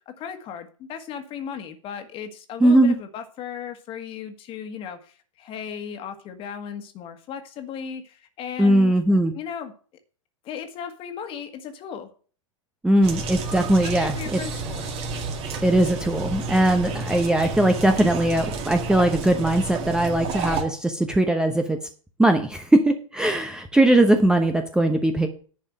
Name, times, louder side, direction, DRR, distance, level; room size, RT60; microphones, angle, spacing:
voice 1, 0.1-8.9 9.3-9.7 10.4-12.1 13.8-14.9, left 8 dB, 30° left, 7 dB, 1.8 m, -36 dB
voice 2, 2.6-2.9 8.6-9.3 12.8-14.4 15.6-21.8 22.2-25.3, right 1 dB, 5° right, 6 dB, 1.0 m, -20 dB
sound 1, 13.0-20.6, right 3 dB, 35° right, 2.2 m, -31 dB
10.5 x 5.4 x 7.8 m, 0.41 s
figure-of-eight pair, 95°, 17 cm